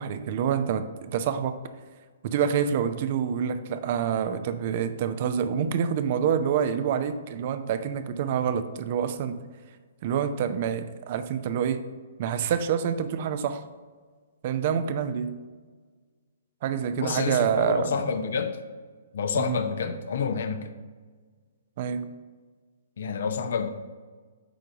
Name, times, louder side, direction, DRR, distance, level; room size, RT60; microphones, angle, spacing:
voice 1, 0.0-1.6 2.2-9.4 10.0-11.8 12.2-13.6 14.4-15.4 16.6-17.9 19.4-19.6 21.8-22.1, right 8 dB, 45° right, 11 dB, 0.5 m, -27 dB
voice 2, 17.0-18.6 19.1-20.8 23.0-23.7, left 6 dB, 60° left, 9 dB, 0.7 m, -28 dB
8.6 x 3.8 x 4.6 m, 1.5 s
figure-of-eight pair, 125°, 0 cm